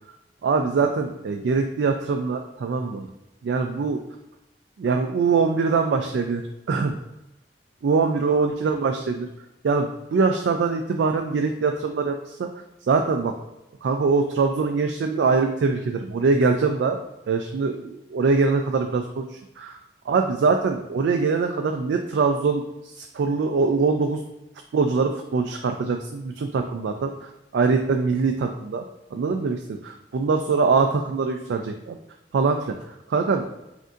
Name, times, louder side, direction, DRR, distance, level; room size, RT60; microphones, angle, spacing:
voice 1, 0.4-3.1 3.4-4.0 4.8-6.4 6.7-7.0 7.8-9.3 9.6-12.1 12.4-12.5 12.9-13.3 13.8-17.0 17.3-19.8 20.1-24.2 24.7-28.8 29.1-32.0 32.3-32.8 33.1-33.5, right 4 dB, 80° right, 5 dB, 0.3 m, -23 dB
6.0 x 2.6 x 2.5 m, 0.94 s
head